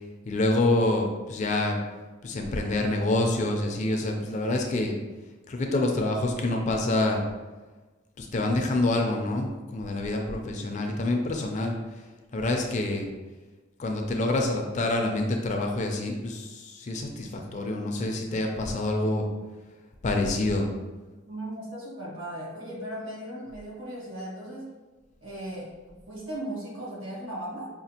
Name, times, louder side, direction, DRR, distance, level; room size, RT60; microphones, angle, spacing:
voice 1, 0.3-1.8 2.2-4.9 5.5-7.2 8.2-11.8 12.3-13.1 13.8-19.2 20.0-20.7, left 2 dB, 35° left, 2 dB, 0.4 m, -27 dB
voice 2, 21.3-24.7 25.2-25.7 26.1-27.7, right 1 dB, 65° right, -5 dB, 1.4 m, -37 dB
5.0 x 2.4 x 2.8 m, 1.2 s
head